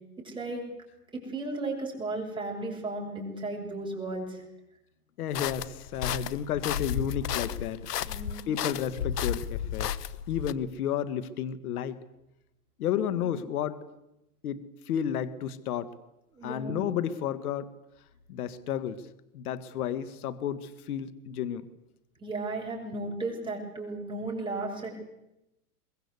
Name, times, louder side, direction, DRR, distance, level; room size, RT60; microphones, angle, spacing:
voice 1, 0.2-0.6 1.1-4.4 8.1-8.4 13.1-13.3 16.3-16.8 22.2-25.0, right 2 dB, 10° right, -1 dB, 7.0 m, -35 dB
voice 2, 5.2-9.9 10.3-12.0 12.8-13.8 14.4-16.0 16.4-17.7 18.3-19.1 19.3-21.7, left 9 dB, 70° left, 14 dB, 1.7 m, -32 dB
sound 1, 5.3-10.5, left 9 dB, 90° left, 1.2 m, -33 dB
23.5 x 21.0 x 8.2 m, 0.90 s
hypercardioid pair, 135°, 46 cm